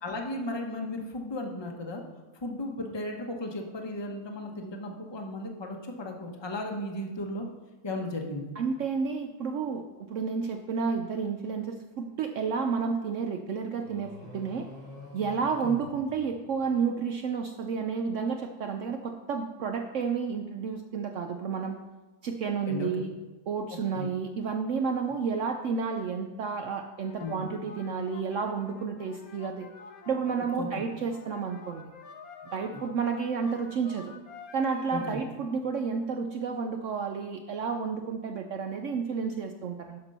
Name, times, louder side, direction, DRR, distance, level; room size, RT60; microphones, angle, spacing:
voice 1, 0.0-2.0 2.3-7.5 7.8-8.6 15.6-15.8 22.7-22.9 23.9-24.1 27.2-27.5 30.6-30.7 34.9-35.2, left 1 dB, 20° left, 2 dB, 0.8 m, -35 dB
voice 2, 8.6-14.7 15.1-21.8 22.2-23.1 23.5-29.7 30.1-31.9 32.5-34.1 34.5-40.0, right 5 dB, 65° right, 5 dB, 0.8 m, -31 dB
sound 1, 13.7-17.0, left 2 dB, 50° right, 2.6 m, -48 dB
Flute Szolo, 27.0-35.1, left 5 dB, 65° left, 1.2 m, -49 dB
12.0 x 4.4 x 5.4 m, 1.2 s
omnidirectional pair, 1.7 m